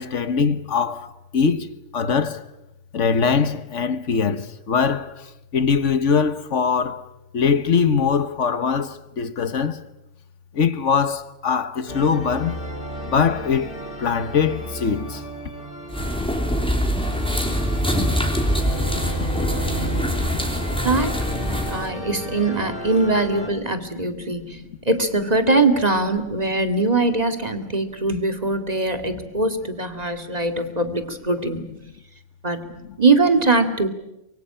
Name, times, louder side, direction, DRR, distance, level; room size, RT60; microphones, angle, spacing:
voice 1, 0.0-2.4 2.9-9.8 10.5-12.6 13.0-15.2 21.6-22.0 23.7-23.8 24.1-24.8, left 6 dB, 80° left, 1.5 m, -22 dB
sound 1, 11.9-23.5, right 1 dB, 45° left, 4.0 m, -33 dB
sound 2, 15.9-21.9, equal, 5° left, 3.3 m, -24 dB
voice 2, 20.8-21.2 21.5-24.6 24.9-31.7 32.4-32.7 33.0-33.9, right 3 dB, 35° right, 2.3 m, -21 dB
24.5 x 23.5 x 8.7 m
omnidirectional pair, 1.2 m